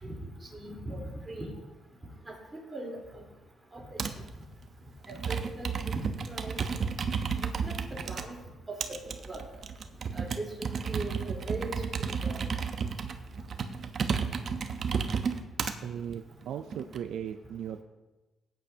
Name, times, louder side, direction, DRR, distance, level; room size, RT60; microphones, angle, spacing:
voice 1, 0.0-1.5 2.3-2.4 2.7-3.2 3.7-4.0 5.1-5.8 6.3-6.6 7.6-8.4 8.7-8.8 9.3-9.4 10.1-10.5 10.9-11.8 12.2-12.4, right 2 dB, 15° right, -2 dB, 3.6 m, -39 dB
Computer keyboard, 4.0-4.3 5.0-8.2 8.8-15.7 16.4-17.0, right 6 dB, 50° right, 0.8 m, -32 dB
voice 2, 15.8-17.8, right 9 dB, 75° right, 8 dB, 0.4 m, -37 dB
17.0 x 9.1 x 2.8 m, 1.1 s
cardioid pair, 90°, 0 cm